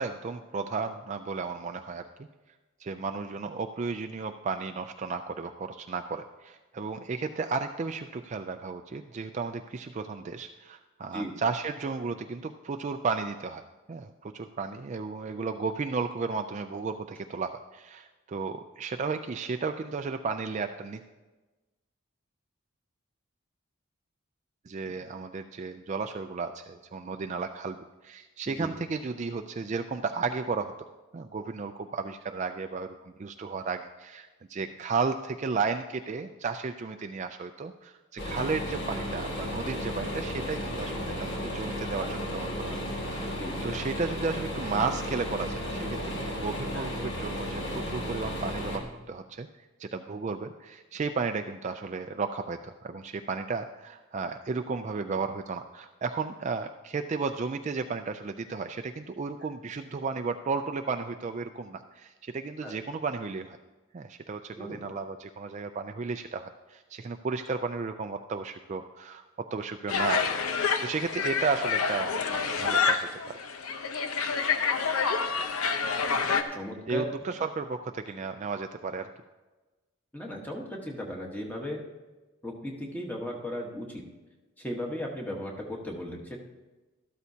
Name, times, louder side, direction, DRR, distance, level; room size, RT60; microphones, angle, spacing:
voice 1, 0.0-2.0 2.8-13.6 13.9-21.0 24.7-27.8 28.0-30.7 31.1-43.4 43.6-49.5 49.8-63.6 63.9-70.2 70.5-73.4 76.9-79.1, right 4 dB, 35° right, 7 dB, 0.3 m, -34 dB
sound 1, 38.2-48.8, equal, 55° left, 1.9 m, -34 dB
voice 2, 42.5-42.8 43.3-43.5 46.7-46.9 62.6-62.7 64.6-64.8 76.5-77.1 80.1-81.8 82.4-84.0 84.6-86.4, equal, 10° left, -1 dB, 1.2 m, -36 dB
sound 2, 69.9-76.4, left 5 dB, 90° left, 0.8 m, -28 dB
13.0 x 12.5 x 2.8 m, 1.2 s
head